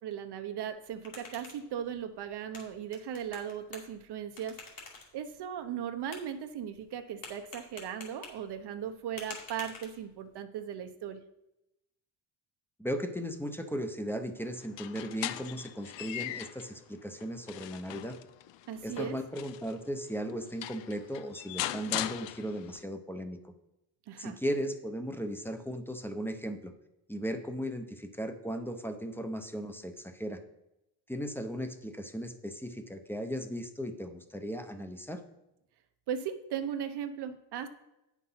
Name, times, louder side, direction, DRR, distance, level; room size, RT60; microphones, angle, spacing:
voice 1, 0.0-4.6 5.1-11.2 18.7-19.2 24.1-24.4 36.1-37.7, right 9 dB, 65° right, 8 dB, 0.8 m, -37 dB
sound 1, 0.7-10.4, left 4 dB, 50° left, 2.6 m, -51 dB
voice 2, 12.8-18.2 18.8-23.5 24.2-26.7 27.1-30.4 31.1-35.2, equal, 5° left, 7 dB, 0.7 m, -37 dB
sound 2, 14.6-16.7 17.2-19.8 20.3-20.4 20.6-22.8, left 14 dB, 80° left, 0.5 m, -39 dB
9.0 x 6.0 x 5.6 m, 0.90 s
cardioid pair, 125°, 43 cm